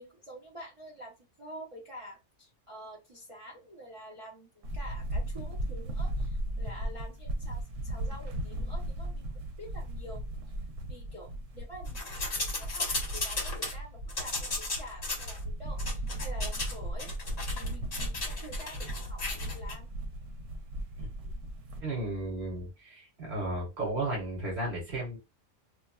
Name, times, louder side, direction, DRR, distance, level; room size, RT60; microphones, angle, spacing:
voice 1, 0.0-9.3 9.6-10.2 10.9-12.1 12.6-17.1 17.5-19.9, right 1 dB, 30° right, 0.8 m, -47 dB
sound 1, 4.6-21.8, right 1 dB, 85° right, 1.0 m, -36 dB
sound 2, 11.9-13.7 14.1-15.4 15.8-16.7 17.0-19.7, left 2 dB, 35° left, 0.9 m, -35 dB
voice 2, 21.8-25.2, right 2 dB, 60° right, 1.6 m, -34 dB
3.4 x 2.2 x 2.3 m
omnidirectional pair, 1.3 m